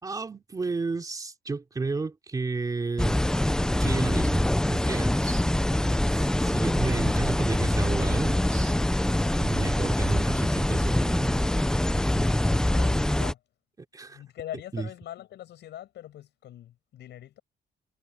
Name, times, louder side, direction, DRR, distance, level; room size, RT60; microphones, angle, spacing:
voice 1, 0.0-3.2 3.8-5.5 6.1-8.8 9.4-11.4 13.9-14.2 14.7-14.9, right 3 dB, 20° right, 3.2 m, -32 dB
sound 1, 3.0-13.3, left 1 dB, 5° left, 0.5 m, -24 dB
voice 2, 5.4-6.0 12.5-13.4 14.1-17.4, left 12 dB, 85° left, 6.5 m, -42 dB
cardioid pair, 170°, 18 cm